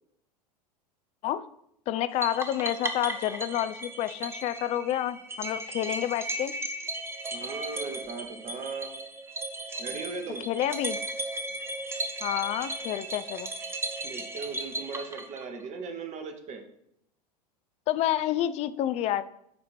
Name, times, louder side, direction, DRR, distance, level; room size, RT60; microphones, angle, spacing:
voice 1, 1.9-6.6 10.5-11.0 12.2-13.5 17.9-19.2, left 12 dB, 30° left, 14 dB, 0.3 m, -29 dB
sound 1, 2.2-15.7, right 1 dB, 10° right, 0.7 m, -36 dB
voice 2, 7.3-8.9 9.8-10.4 14.0-16.6, right 4 dB, 35° right, 6 dB, 1.0 m, -38 dB
8.3 x 2.8 x 4.3 m, 0.75 s
figure-of-eight pair, 85°, 21 cm